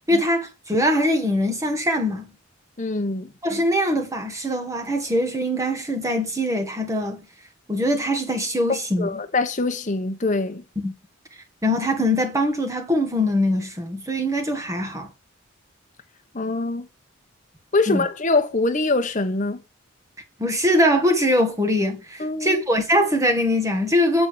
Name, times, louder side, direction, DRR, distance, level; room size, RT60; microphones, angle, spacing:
voice 1, 0.1-2.3 3.4-7.2 7.7-9.1 10.8-10.9 11.6-15.1 17.9-18.0 20.4-24.3, equal, 15° right, 1.5 m, -22 dB
voice 2, 2.8-3.3 9.0-10.6 16.3-16.9 17.7-19.6 22.2-22.6, left 3 dB, 35° left, 1.1 m, -23 dB
8.4 x 4.0 x 6.5 m
head